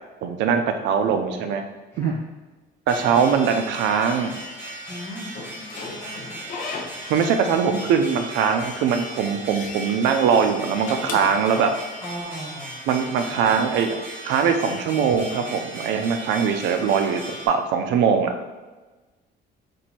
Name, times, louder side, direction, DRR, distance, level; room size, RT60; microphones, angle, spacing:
voice 1, 0.2-1.6 2.0-2.2 2.9-4.4 7.1-11.7 12.9-14.0 14.2-18.3, right 6 dB, 85° right, 6 dB, 0.5 m, -21 dB
sound 1, 2.9-17.5, right 1 dB, 10° right, 1.0 m, -37 dB
voice 2, 4.9-6.3 12.0-12.8 13.3-13.4, equal, 15° left, -6 dB, 1.3 m, -37 dB
Slam / Squeak, 5.3-7.4 7.7-8.7 9.0-9.9 10.6-12.1, left 4 dB, 50° left, 0.6 m, -37 dB
4.5 x 2.6 x 4.2 m, 1.2 s
cardioid pair, 170°, 18 cm